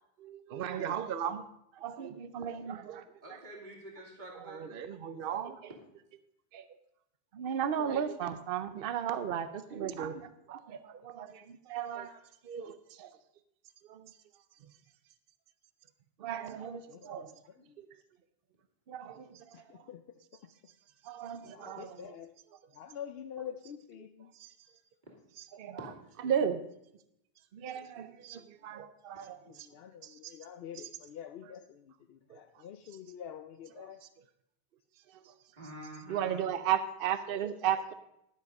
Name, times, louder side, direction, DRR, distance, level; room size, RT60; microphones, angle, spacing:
voice 1, 0.2-1.4 1.7-3.0 3.3-3.4 4.3-5.8 6.5-6.6 7.3-13.2 13.9-14.1 16.2-17.3 17.8-17.9 18.9-19.9 21.0-22.1 24.4-24.5 25.4-25.9 26.2-26.6 27.5-29.7 30.0-30.3 32.3-32.4 35.1-35.3 36.1-37.9, right 9 dB, 65° right, 11 dB, 0.8 m, -36 dB
voice 2, 3.2-4.7 25.8-25.9 35.6-36.4, right 1 dB, 45° right, -1 dB, 2.5 m, -46 dB
voice 3, 16.9-17.8 19.5-20.2 21.4-22.4 22.7-24.3 29.5-34.0, left 9 dB, 70° left, 8 dB, 0.8 m, -47 dB
12.0 x 7.3 x 5.3 m, 0.80 s
omnidirectional pair, 1.1 m